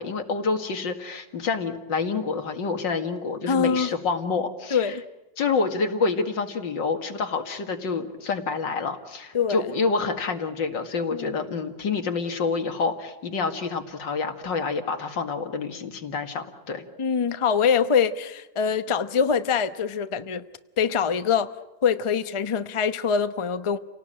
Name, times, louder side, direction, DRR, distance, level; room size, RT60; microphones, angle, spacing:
voice 1, 0.0-5.0 5.4-16.8, left 4 dB, 90° left, 2.6 m, -28 dB
voice 2, 3.5-3.9 4.7-5.0 9.3-9.7 11.1-11.3 17.0-20.4 20.8-21.5 21.8-23.8, left 6 dB, 30° left, 0.6 m, -24 dB
29.5 x 18.5 x 8.9 m
omnidirectional pair, 1.9 m